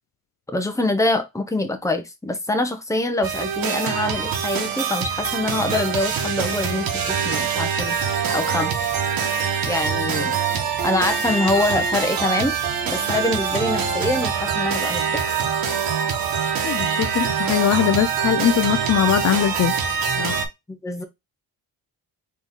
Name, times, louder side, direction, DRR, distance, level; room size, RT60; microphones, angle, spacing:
voice 1, 0.5-8.0 8.3-8.7 9.6-10.4 10.8-12.6 12.8-15.3 20.7-21.0, left 2 dB, 10° left, 0.9 m, -24 dB
sound 1, 3.2-20.5, right 6 dB, 70° right, 1.1 m, -24 dB
voice 2, 16.6-19.7 20.2-20.4, left 10 dB, 50° left, 0.5 m, -21 dB
4.0 x 3.2 x 3.6 m
cardioid pair, 125°, 36 cm